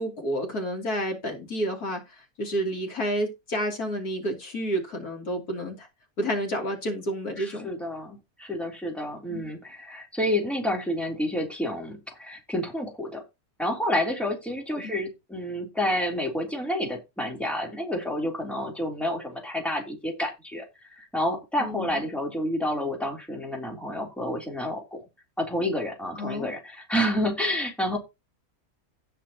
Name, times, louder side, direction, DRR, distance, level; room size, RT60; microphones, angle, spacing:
voice 1, 0.0-5.9 6.2-7.7 9.3-9.5 14.8-15.0 21.6-22.0 26.2-26.5, equal, 85° left, 1 dB, 3.6 m, -30 dB
voice 2, 7.4-13.2 13.6-25.0 25.4-28.0, left 1 dB, ahead, 0 dB, 3.3 m, -29 dB
17.0 x 6.0 x 2.9 m, 0.23 s
omnidirectional pair, 1.6 m